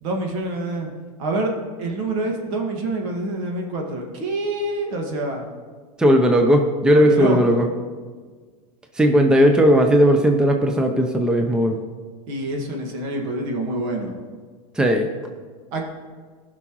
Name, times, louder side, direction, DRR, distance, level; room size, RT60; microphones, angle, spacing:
voice 1, 0.0-0.9 1.2-5.5 6.9-7.6 12.3-14.1 15.7-15.8, right 2 dB, 60° right, 2 dB, 1.9 m, -26 dB
voice 2, 6.0-7.7 8.9-11.8 14.7-15.1, equal, 5° right, 4 dB, 0.7 m, -16 dB
15.5 x 6.0 x 3.1 m, 1.5 s
hypercardioid pair, 110°, 19 cm